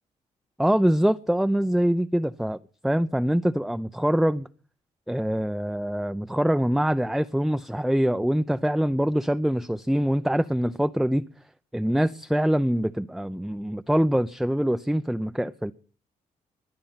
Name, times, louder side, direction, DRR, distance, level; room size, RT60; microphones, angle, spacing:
voice 1, 0.6-4.5 5.1-11.2 11.7-15.7, equal, ahead, 0.6 m, -24 dB
20.5 x 9.0 x 5.8 m
cardioid pair, 80°, 14 cm